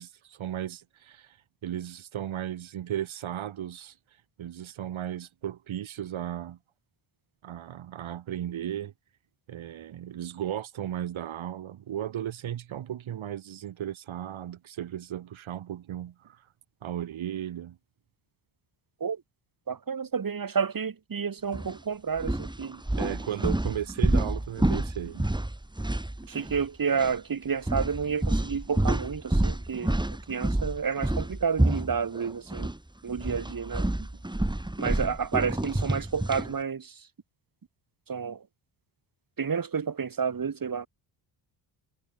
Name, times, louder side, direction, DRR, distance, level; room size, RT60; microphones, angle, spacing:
voice 1, 0.0-1.4 1.6-3.9 4.4-6.6 7.4-8.9 9.5-16.4 16.8-17.8 23.0-25.3, right 11 dB, 70° right, 7.0 m, -35 dB
voice 2, 19.7-22.8 26.3-29.9 30.3-32.7 33.0-33.9 34.8-36.9 38.1-38.4 39.4-40.9, right 6 dB, 45° right, 3.5 m, -30 dB
sound 1, 21.5-21.7 22.2-26.7 26.9-27.1 27.7-32.8 33.1-36.5, right 1 dB, 10° right, 3.5 m, -28 dB
supercardioid pair, 60°, 49 cm